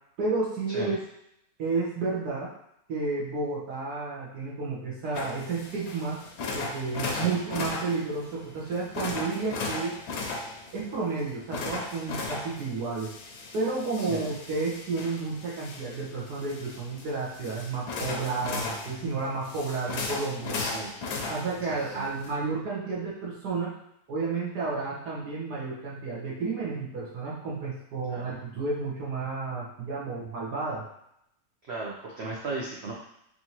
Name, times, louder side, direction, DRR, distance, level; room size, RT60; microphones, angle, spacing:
voice 1, 0.2-1.0 1.6-2.5 2.9-6.2 6.5-10.0 10.7-13.1 13.5-20.6 21.3-23.7 24.1-30.8, right 4 dB, 65° right, -6 dB, 1.5 m, -31 dB
sound 1, 5.1-22.3, left 3 dB, 70° left, 1.1 m, -37 dB
voice 2, 20.6-20.9 21.7-22.1 28.1-28.3 31.7-32.9, right 3 dB, 85° right, -4 dB, 0.5 m, -35 dB
4.4 x 2.7 x 2.9 m, 0.76 s
omnidirectional pair, 1.9 m